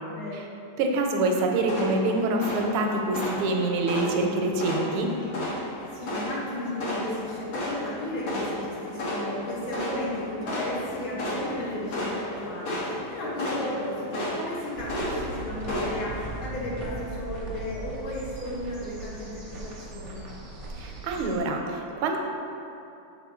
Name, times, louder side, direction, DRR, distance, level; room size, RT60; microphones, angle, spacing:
voice 1, 0.8-5.1 20.8-22.2, right 2 dB, 80° right, 2 dB, 1.4 m, -26 dB
sound 1, 1.6-16.4, left 1 dB, 85° left, 2.1 m, -33 dB
voice 2, 5.9-20.2, left 1 dB, 70° left, -6 dB, 2.0 m, -34 dB
sound 2, 14.7-21.4, right 2 dB, 55° right, 0.8 m, -39 dB
6.8 x 4.3 x 3.6 m, 2.8 s
omnidirectional pair, 2.4 m